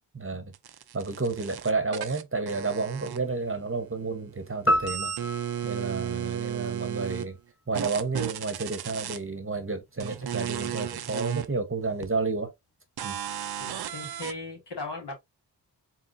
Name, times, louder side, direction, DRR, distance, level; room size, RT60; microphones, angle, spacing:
voice 1, 0.1-0.5 0.9-5.1 5.6-7.4 7.7-12.5 13.0-13.2, right 3 dB, 30° right, 1.0 m, -31 dB
sound 1, 0.5-3.6 3.9-7.3 7.7-9.2 10.0-11.5 12.0-12.1 13.0-14.3, right 10 dB, 60° right, 0.5 m, -34 dB
sound 2, 4.7-7.1, equal, 30° left, 1.0 m, -30 dB
voice 2, 13.6-15.1, left 3 dB, 70° left, 2.2 m, -38 dB
4.5 x 3.7 x 2.5 m
cardioid pair, 40°, 43 cm